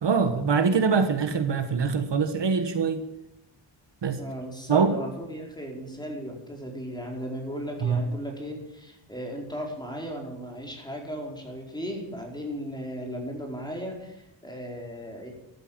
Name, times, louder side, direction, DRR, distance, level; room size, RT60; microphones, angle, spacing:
voice 1, 0.0-3.0 4.0-4.2 4.7-5.0 7.8-8.0, right 5 dB, 60° right, 8 dB, 1.5 m, -23 dB
voice 2, 4.2-15.3, equal, 10° left, 0 dB, 4.7 m, -36 dB
14.0 x 12.5 x 7.5 m, 0.83 s
wide cardioid pair, 125°, 47 cm